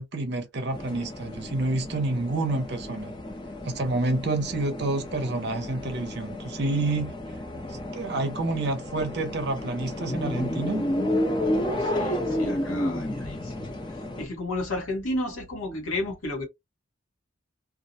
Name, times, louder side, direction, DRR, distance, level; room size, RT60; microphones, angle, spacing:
voice 1, 0.0-3.1 3.6-7.1 7.7-10.8, right 2 dB, 55° right, 0.6 m, -28 dB
sound 1, 0.7-14.2, left 1 dB, 20° left, 0.4 m, -31 dB
voice 2, 11.4-13.8 14.2-16.4, left 1 dB, 85° left, 1.2 m, -32 dB
2.3 x 2.1 x 2.6 m
head